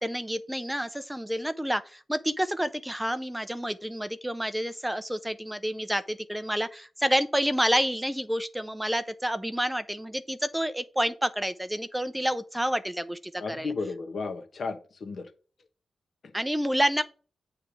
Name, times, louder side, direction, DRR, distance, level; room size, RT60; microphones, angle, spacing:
voice 1, 0.0-13.7 16.3-17.0, equal, 5° right, 0.5 m, -29 dB
voice 2, 13.4-15.3 16.2-16.3, left 4 dB, 55° left, 1.1 m, -34 dB
8.7 x 3.3 x 6.1 m
wide cardioid pair, 145°, 0 cm